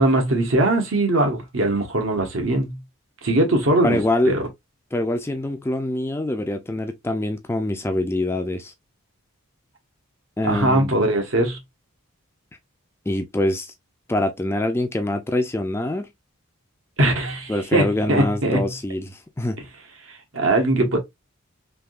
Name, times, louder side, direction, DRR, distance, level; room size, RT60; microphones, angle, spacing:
voice 1, 0.0-2.8 3.2-4.0 4.3-4.5 10.4-11.6 17.0-18.7 20.3-21.0, right 1 dB, 65° right, 1.2 m, -20 dB
voice 2, 3.8-4.4 4.9-8.7 10.4-10.9 13.1-13.7 14.1-16.1 17.5-19.6, left 1 dB, 10° left, 0.3 m, -24 dB
3.5 x 2.7 x 2.3 m
head